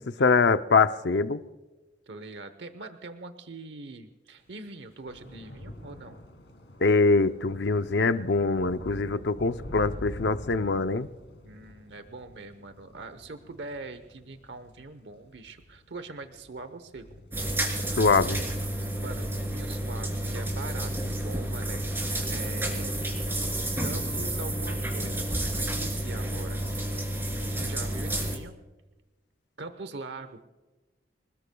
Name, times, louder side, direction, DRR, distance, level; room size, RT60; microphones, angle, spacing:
voice 1, 0.2-1.4 6.8-11.1 18.0-18.4, left 4 dB, 70° left, 10 dB, 0.6 m, -23 dB
voice 2, 2.1-6.2 11.4-17.1 18.8-21.8 22.3-23.0 23.5-26.6 27.6-28.6 29.6-30.4, right 3 dB, 70° right, 10 dB, 1.0 m, -42 dB
Thunder / Rain, 4.5-21.1 21.4-21.9 22.1-22.3, equal, 90° left, 2.5 m, -46 dB
sound 1, 17.3-28.4, right 1 dB, 15° right, 3.2 m, -30 dB
26.5 x 19.5 x 2.3 m, 1.1 s
head